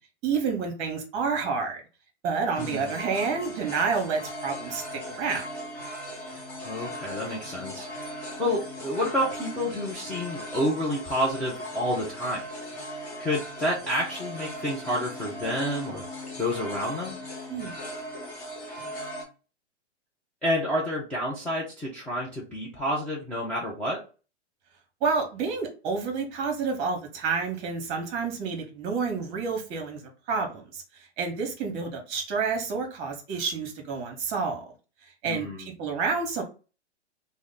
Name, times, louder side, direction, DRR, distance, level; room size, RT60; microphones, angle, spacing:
voice 1, 0.2-1.8 2.2-5.4 17.5-17.8 25.0-30.0 30.3-30.8 31.2-34.6 35.2-36.4, right 5 dB, 35° right, 3 dB, 1.0 m, -29 dB
sound 1, 2.5-19.2, equal, 25° left, 1.3 m, -38 dB
voice 2, 2.6-2.9 6.6-12.4 13.2-16.0 16.4-17.2 20.4-24.0 35.2-35.7, equal, 5° left, -6 dB, 0.4 m, -29 dB
3.1 x 2.1 x 3.8 m, 0.34 s
hypercardioid pair, 120°, 34 cm